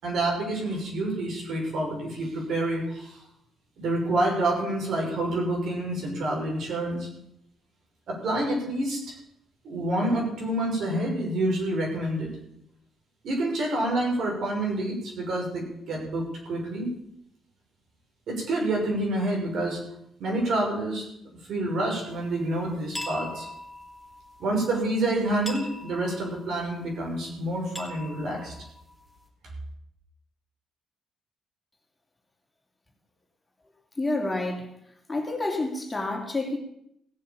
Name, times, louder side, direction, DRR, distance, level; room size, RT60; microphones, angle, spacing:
voice 1, 0.0-3.2 3.8-7.1 8.1-9.1 9.6-12.3 13.2-16.9 18.3-19.8 20.2-21.0 21.5-23.5 24.4-28.5, right 1 dB, 70° right, 6.1 m, -28 dB
sound 1, 22.1-29.3, left 1 dB, 5° right, 4.1 m, -42 dB
voice 2, 34.0-34.7 35.1-36.6, left 2 dB, 15° left, 3.2 m, -28 dB
17.0 x 7.5 x 7.3 m
cardioid pair, 85°, 0 cm